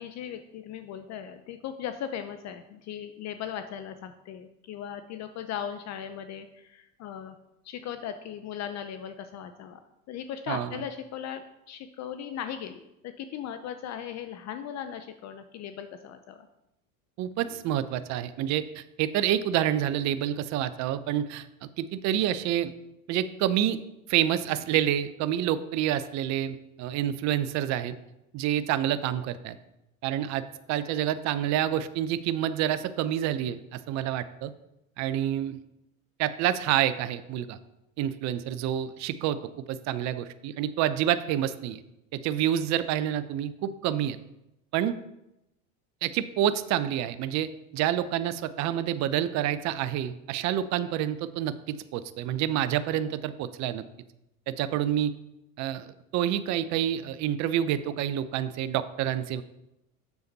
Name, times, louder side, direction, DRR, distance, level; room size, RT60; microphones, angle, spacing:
voice 1, 0.0-7.4 7.6-9.8 10.1-16.5, left 9 dB, 40° left, 9 dB, 0.6 m, -38 dB
voice 2, 17.2-21.5 21.8-22.7 23.1-23.8 24.1-28.0 28.3-29.6 30.0-34.5 35.0-35.6 36.2-37.6 38.0-39.4 39.7-41.8 42.1-44.2 44.7-44.9 46.0-53.8 54.5-55.1 55.6-59.4, right 11 dB, 45° right, 13 dB, 0.5 m, -28 dB
7.0 x 6.6 x 4.0 m, 0.88 s
supercardioid pair, 95°, 41 cm